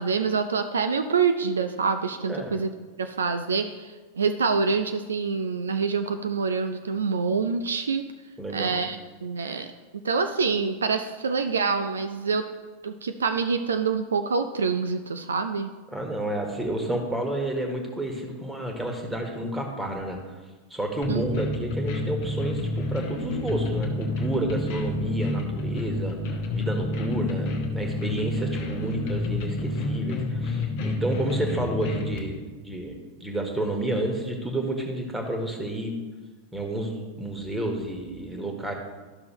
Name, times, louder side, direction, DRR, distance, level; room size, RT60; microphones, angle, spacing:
voice 1, 0.0-2.7 3.0-8.0 8.5-9.7 10.0-12.4 12.8-15.7 21.1-21.3, right 5 dB, 70° right, 9 dB, 0.4 m, -26 dB
voice 2, 8.4-8.9 15.9-20.2 20.7-26.2 26.5-35.9 36.5-38.7, right 1 dB, 5° right, 2 dB, 1.5 m, -30 dB
sound 1, 21.0-32.2, left 2 dB, 45° left, 1.1 m, -29 dB
12.5 x 5.9 x 3.1 m, 1.3 s
figure-of-eight pair, 90°, 0 cm